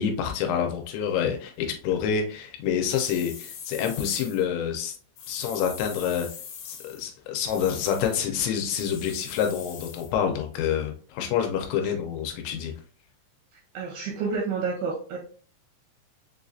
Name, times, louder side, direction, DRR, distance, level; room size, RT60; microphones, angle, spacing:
voice 1, 0.0-5.0 5.3-6.3 6.7-12.7, left 8 dB, 90° left, 3 dB, 3.0 m, -27 dB
sound 1, 2.9-4.4 5.2-7.0 7.5-8.2 8.8-10.1, left 7 dB, 75° left, 2.5 m, -42 dB
voice 2, 13.7-15.2, right 5 dB, 85° right, 0 dB, 2.3 m, -29 dB
6.9 x 2.4 x 2.6 m, 0.43 s
omnidirectional pair, 5.3 m